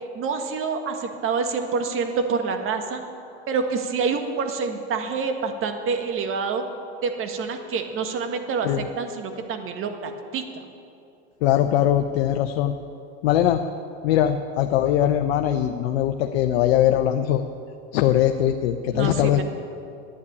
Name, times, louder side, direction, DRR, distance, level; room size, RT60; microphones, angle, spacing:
voice 1, 0.1-3.0 3.5-6.6 7.0-10.6 18.9-19.4, right 5 dB, 40° right, 5 dB, 1.7 m, -27 dB
voice 2, 11.4-12.7 13.2-13.6 14.0-17.4 17.9-19.4, left 11 dB, 70° left, 6 dB, 0.9 m, -21 dB
12.0 x 9.9 x 8.6 m, 2.6 s
supercardioid pair, 110°, 33 cm